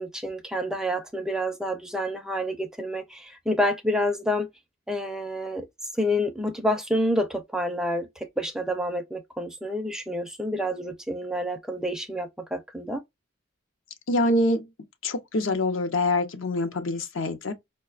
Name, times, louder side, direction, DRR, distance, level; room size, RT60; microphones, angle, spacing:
voice 1, 0.0-4.5 4.9-5.6 6.0-13.0 14.3-14.6, equal, 5° right, 0.4 m, -28 dB
voice 2, 14.1-14.6 15.0-17.5, left 2 dB, 65° left, 0.6 m, -25 dB
4.8 x 2.2 x 2.3 m
head